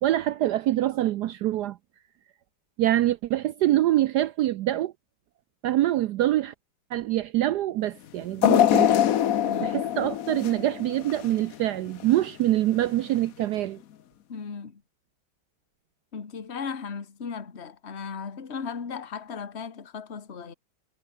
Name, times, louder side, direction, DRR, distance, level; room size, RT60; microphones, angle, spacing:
voice 1, 0.0-1.8 2.8-4.9 5.6-6.5 6.9-8.9 9.6-13.8, right 14 dB, 75° right, 0.9 m, -25 dB
sound 1, 8.4-11.6 12.0-12.1 13.2-13.3, left 10 dB, 60° left, 1.0 m, -23 dB
voice 2, 9.4-9.8 14.3-14.8 16.1-20.5, left 6 dB, 30° left, 2.0 m, -36 dB
omnidirectional pair, 2.3 m